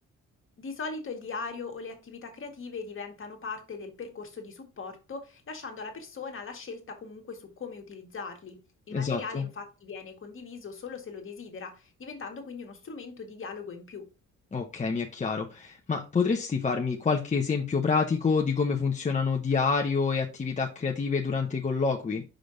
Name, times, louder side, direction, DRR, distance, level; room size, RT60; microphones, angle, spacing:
voice 1, 0.6-8.6 8.9-14.0, left 4 dB, 45° left, 4 dB, 1.8 m, -40 dB
voice 2, 8.9-9.4 14.5-22.2, left 5 dB, 25° left, 1 dB, 0.9 m, -27 dB
5.2 x 5.1 x 3.9 m, 0.31 s
cardioid pair, 90°, 30 cm